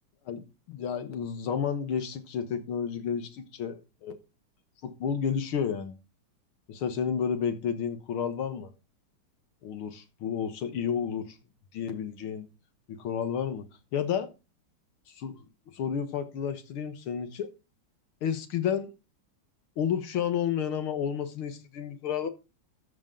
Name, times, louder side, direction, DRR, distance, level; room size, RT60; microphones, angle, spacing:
voice 1, 0.3-4.2 4.8-6.0 6.7-8.7 9.6-11.4 11.7-12.5 12.9-13.7 13.9-14.3 15.2-15.3 15.7-17.5 18.2-18.9 19.8-22.3, left 7 dB, 85° left, 2.1 m, -31 dB
13.5 x 6.4 x 3.8 m
omnidirectional pair, 2.3 m